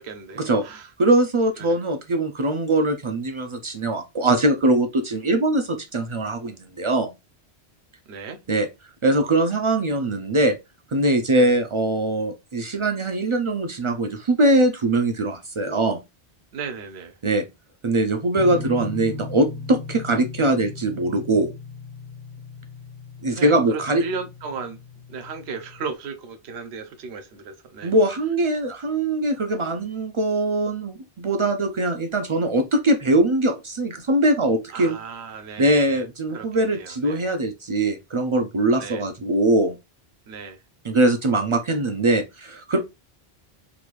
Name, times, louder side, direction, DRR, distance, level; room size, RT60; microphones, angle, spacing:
voice 1, 0.0-0.9 1.6-1.8 8.1-8.4 11.4-11.5 16.5-17.2 23.3-24.8 25.1-27.9 34.7-36.0 36.3-37.2 38.8-39.0 40.3-40.6, right 5 dB, 85° right, 1.0 m, -35 dB
voice 2, 1.0-7.1 8.5-8.7 9.0-10.6 10.9-16.0 17.2-17.5 17.8-21.5 23.2-24.0 27.8-35.0 35.6-39.8 40.8-42.8, right 2 dB, 55° right, 0.3 m, -22 dB
sound 1, 18.4-25.9, left 3 dB, 30° left, 0.4 m, -38 dB
3.9 x 2.4 x 3.1 m
omnidirectional pair, 1.1 m